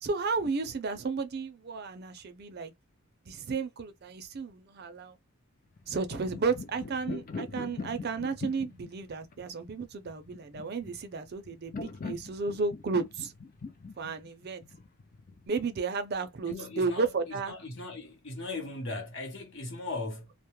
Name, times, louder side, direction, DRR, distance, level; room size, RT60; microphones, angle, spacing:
voice 1, 0.0-2.7 3.2-5.2 5.9-13.3 14.0-14.6 15.5-17.5, right 4 dB, 45° right, 0.4 m, -33 dB
sound 1, 5.8-15.5, left 4 dB, 40° left, 0.4 m, -42 dB
voice 2, 16.4-20.3, left 3 dB, 60° left, 0.9 m, -38 dB
2.2 x 2.0 x 2.9 m
head